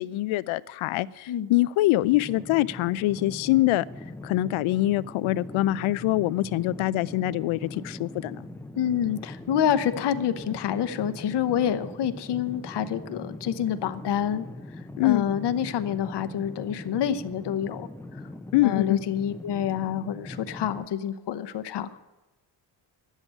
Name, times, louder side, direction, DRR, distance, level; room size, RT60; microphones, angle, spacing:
voice 1, 0.0-3.8 4.2-8.4 15.0-15.3 18.5-19.0, left 16 dB, 80° left, 18 dB, 0.6 m, -24 dB
sound 1, 2.1-20.9, left 2 dB, 5° left, 0.6 m, -41 dB
voice 2, 8.8-14.5 15.0-17.9 18.6-22.0, left 9 dB, 55° left, 10 dB, 0.9 m, -27 dB
10.5 x 8.2 x 9.9 m, 1.1 s
cardioid pair, 80°, 48 cm